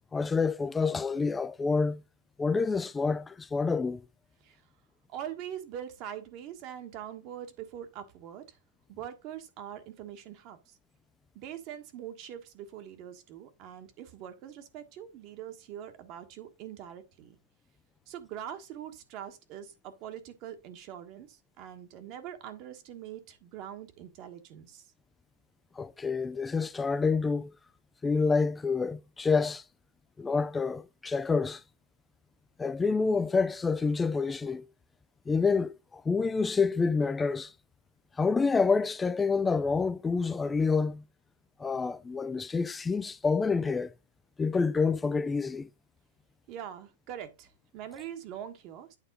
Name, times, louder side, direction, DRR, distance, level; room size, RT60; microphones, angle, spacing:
voice 1, 0.1-2.0 2.4-4.0 25.8-27.5 28.0-29.6 30.2-31.6 32.6-34.6 35.3-37.5 38.2-41.0 41.6-43.9 44.4-45.7, left 4 dB, 15° left, 0.4 m, -28 dB
voice 2, 5.1-8.6 8.9-10.8 11.3-17.4 18.1-24.9 46.5-49.0, right 10 dB, 45° right, 1.4 m, -43 dB
8.9 x 3.7 x 3.9 m
hypercardioid pair, 110°, 0 cm